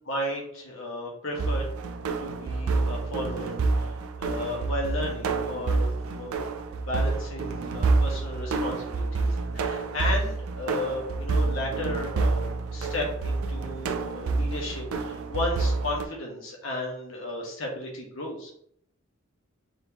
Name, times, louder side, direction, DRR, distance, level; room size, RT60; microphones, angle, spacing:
voice 1, 0.1-1.6 2.2-6.4 6.8-18.5, left 1 dB, 65° left, -2 dB, 1.4 m, -34 dB
sound 1, 1.3-16.0, right 3 dB, 80° right, 0.4 m, -28 dB
4.2 x 3.5 x 2.9 m, 0.67 s
head